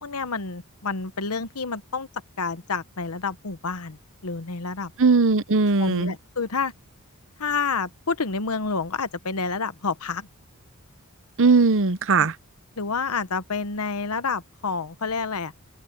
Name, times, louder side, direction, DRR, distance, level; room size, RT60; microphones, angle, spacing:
voice 1, 0.0-2.1 2.4-4.9 5.8-6.7 7.4-10.3 12.2-12.3 12.8-15.5, left 4 dB, 75° left, 1.1 m, -29 dB
voice 2, 5.0-6.1 11.4-12.3, right 4 dB, 60° right, 0.9 m, -19 dB
open air
head